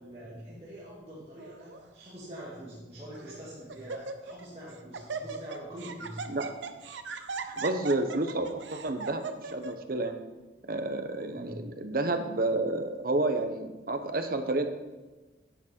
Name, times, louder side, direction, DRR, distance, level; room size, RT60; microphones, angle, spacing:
voice 1, 0.0-6.2 11.3-11.6, equal, 30° right, -7 dB, 2.1 m, -44 dB
Laughter, 1.4-1.8 2.6-2.7 3.1-3.4 3.7-4.5 4.7-9.7, right 4 dB, 75° right, 0.8 m, -38 dB
voice 2, 7.5-10.2 10.7-14.7, right 2 dB, 50° right, 7 dB, 1.0 m, -30 dB
10.0 x 8.9 x 4.5 m, 1.2 s
head